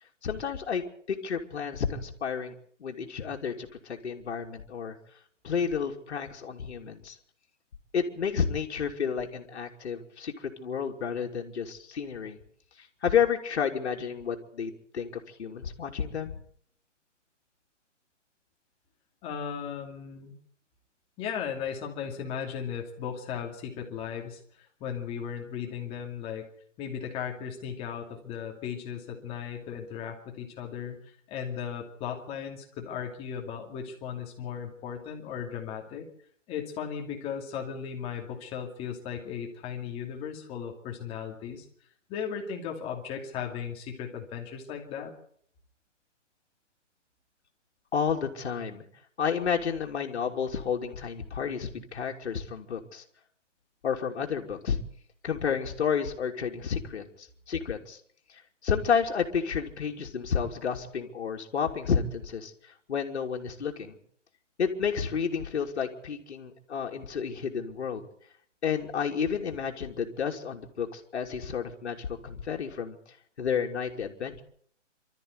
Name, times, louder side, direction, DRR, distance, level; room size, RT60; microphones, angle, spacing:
voice 1, 0.2-2.5 2.8-5.0 5.4-7.1 7.9-12.4 13.0-16.3 47.9-48.8 49.2-53.0 53.8-54.8 55.2-57.0 57.5-58.0 58.6-62.5 62.9-64.0 64.6-68.1 68.6-73.0 73.4-74.4, left 7 dB, 60° left, 2 dB, 2.9 m, -31 dB
voice 2, 19.2-20.3 21.2-26.5 26.8-36.0 36.5-41.6 42.1-45.1, left 7 dB, 15° left, 2 dB, 2.5 m, -36 dB
26.0 x 13.5 x 8.1 m, 0.62 s
hypercardioid pair, 160°, 37 cm